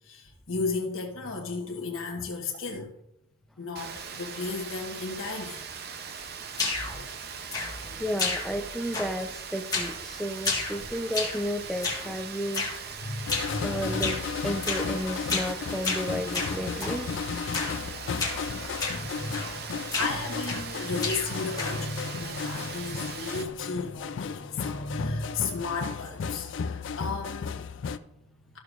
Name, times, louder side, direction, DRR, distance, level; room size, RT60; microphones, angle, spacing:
voice 1, 0.0-3.0 3.6-5.6 7.0-7.1 7.4-8.0 12.0-12.2 13.0-14.0 18.9-28.6, left 3 dB, 85° left, 0 dB, 1.2 m, -35 dB
Rain, 3.8-23.4, right 6 dB, 50° right, 0.6 m, -40 dB
sound 1, 6.5-7.0 7.5-7.9 8.2-8.7 8.9-9.3 9.7-10.0 10.4-11.4 11.8-12.1 12.5-12.8 13.3-13.6 14.0-14.2 14.6-14.9 15.3-15.6 15.8-17.0 17.5-17.8 18.2-18.4 18.8-19.0 19.3-19.6 19.9-20.7 21.0-21.9, left 4 dB, 20° left, 1.5 m, -31 dB
voice 2, 7.9-12.9 13.6-14.2 14.4-17.1, equal, ahead, 5 dB, 0.6 m, -32 dB
sound 2, 13.3-28.0, left 6 dB, 65° left, 0.4 m, -34 dB
13.0 x 6.5 x 2.5 m, 0.83 s
head